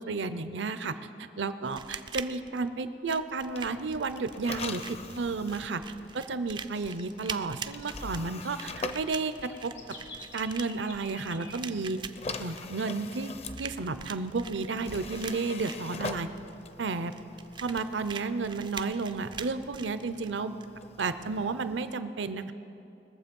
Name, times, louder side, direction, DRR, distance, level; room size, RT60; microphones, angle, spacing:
voice 1, 0.0-5.8 6.1-9.7 10.3-12.0 12.4-13.3 13.6-16.3 16.8-17.1 17.6-20.6 21.0-22.5, right 4 dB, 70° right, 12 dB, 0.6 m, -32 dB
sound 1, 1.7-20.7, right 6 dB, 25° right, 0.3 m, -44 dB
sound 2, 3.4-10.4 11.4-22.0, left 3 dB, 35° left, 0.5 m, -44 dB
sound 3, 6.4-12.2 12.5-12.6 12.9-13.4 13.7-14.9 15.2-15.3 15.7-15.8 16.2-17.4 17.8-19.1, left 2 dB, 80° left, 2.5 m, -51 dB
21.0 x 7.3 x 5.3 m, 2.7 s
head